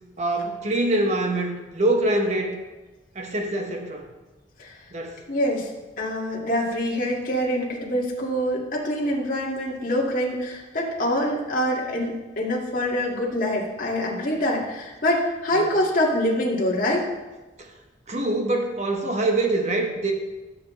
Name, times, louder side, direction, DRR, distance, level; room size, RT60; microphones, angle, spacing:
voice 1, 0.2-2.6 3.1-4.1 4.9-5.2 15.6-15.7 18.1-20.1, right 2 dB, 40° right, 2 dB, 1.3 m, -24 dB
voice 2, 5.3-5.7 6.0-17.1, equal, 50° left, -3 dB, 2.0 m, -25 dB
15.0 x 7.2 x 3.2 m, 1.1 s
head